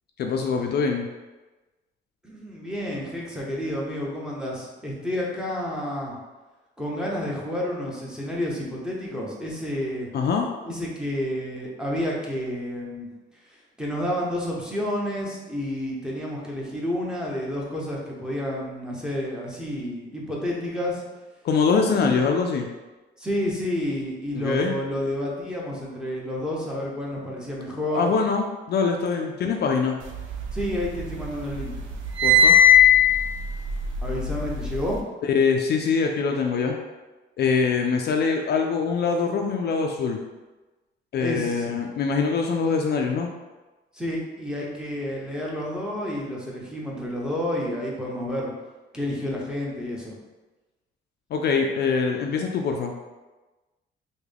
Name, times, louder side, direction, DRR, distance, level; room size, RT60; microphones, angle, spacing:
voice 1, 0.2-1.1 10.1-10.5 21.4-22.7 24.3-24.8 27.9-30.0 32.2-32.6 35.2-36.8 37.4-40.2 41.1-43.3 51.3-52.9, left 5 dB, 55° left, 3 dB, 0.4 m, -23 dB
voice 2, 2.2-6.2 6.8-10.1 10.7-13.1 13.8-21.0 21.9-22.2 23.2-28.1 30.5-31.9 34.0-35.0 41.2-41.8 43.9-48.5 48.9-50.1, left 1 dB, 5° right, -4 dB, 0.8 m, -30 dB
sound 1, 30.2-31.2 31.5-34.9, left 5 dB, 80° right, 0.5 m, -18 dB
3.5 x 2.2 x 3.4 m, 1.2 s
cardioid pair, 90°, 20 cm